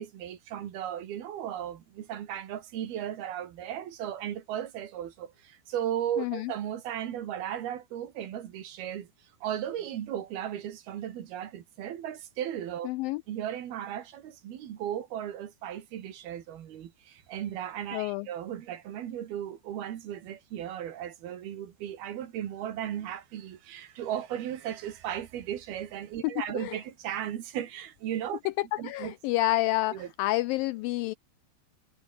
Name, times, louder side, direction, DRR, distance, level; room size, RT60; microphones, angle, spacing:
voice 1, 0.0-9.1 9.4-12.9 13.3-28.4 28.8-29.1 29.9-30.1, right 10 dB, 70° right, 3.8 m, -36 dB
voice 2, 6.2-6.5 12.8-13.2 17.9-18.3 26.2-26.8 28.5-31.1, left 18 dB, 85° left, 2.0 m, -29 dB
omnidirectional pair, 4.6 m